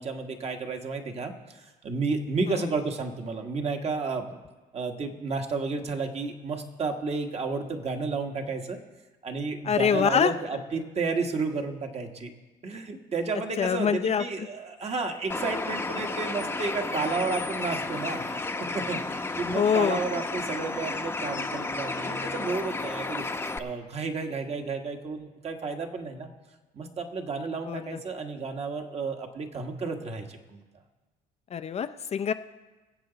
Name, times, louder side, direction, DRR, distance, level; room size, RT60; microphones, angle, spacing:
voice 1, 0.0-4.4 4.7-8.8 9.2-12.3 12.6-18.3 18.6-23.2 23.6-26.3 26.7-30.6, right 4 dB, 40° right, 4 dB, 1.4 m, -32 dB
voice 2, 9.6-10.3 13.6-14.2 19.5-20.0 27.7-28.0 31.5-32.3, left 7 dB, 40° left, 10 dB, 0.5 m, -25 dB
Bird, 15.3-23.6, left 3 dB, 15° left, 0.8 m, -32 dB
23.5 x 7.8 x 4.0 m, 1.2 s
cardioid pair, 110°, 17 cm